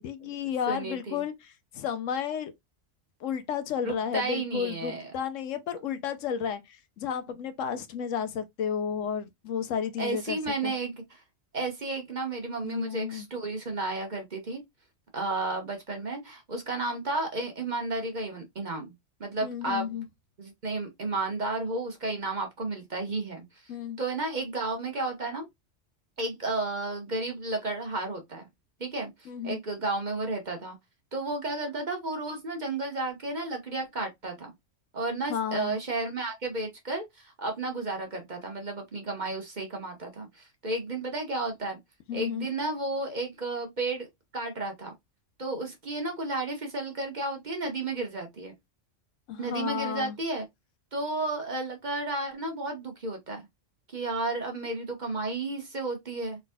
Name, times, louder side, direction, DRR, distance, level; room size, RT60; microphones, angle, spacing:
voice 1, 0.0-2.5 3.2-10.7 12.6-13.3 19.4-20.0 23.7-24.0 29.3-29.6 35.3-35.8 42.1-42.5 49.3-50.2, left 8 dB, 80° left, 1.0 m, -32 dB
voice 2, 0.7-1.2 3.8-5.1 10.0-11.2 11.5-14.6 15.1-18.9 19.2-20.0 20.4-23.4 24.0-25.5 26.2-28.5 28.8-30.8 31.1-34.5 34.9-41.8 42.1-44.1 44.3-44.9 45.4-48.5 49.4-50.4 50.9-53.5 53.9-56.4, right 2 dB, 40° right, 1.2 m, -32 dB
4.0 x 3.6 x 2.3 m
omnidirectional pair, 1.3 m